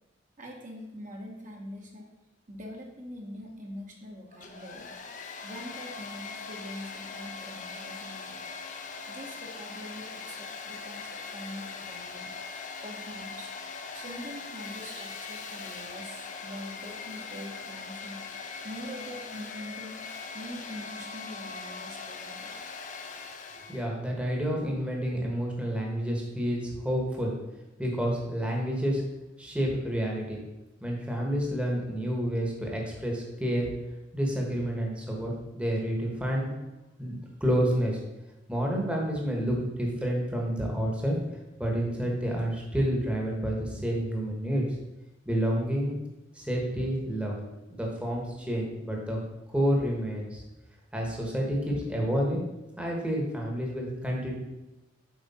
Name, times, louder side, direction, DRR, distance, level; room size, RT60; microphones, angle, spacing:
voice 1, 0.4-2.1 2.5-4.9 5.4-8.4 9.1-12.3 12.8-13.5 13.9-18.2 18.6-20.0 20.3-22.6, equal, 45° right, 0 dB, 1.2 m, -43 dB
Domestic sounds home sounds, 4.3-23.9, left 5 dB, 40° left, 0.7 m, -41 dB
voice 2, 23.7-27.3 27.8-29.0 29.4-30.4 30.8-33.7 34.1-36.5 37.0-37.1 37.4-38.0 38.5-41.1 41.6-44.6 45.3-46.0 46.3-47.4 47.7-49.2 49.5-50.4 50.9-52.4 52.8-54.3, equal, 5° right, -1 dB, 1.2 m, -29 dB
7.3 x 4.9 x 4.2 m, 1.0 s
head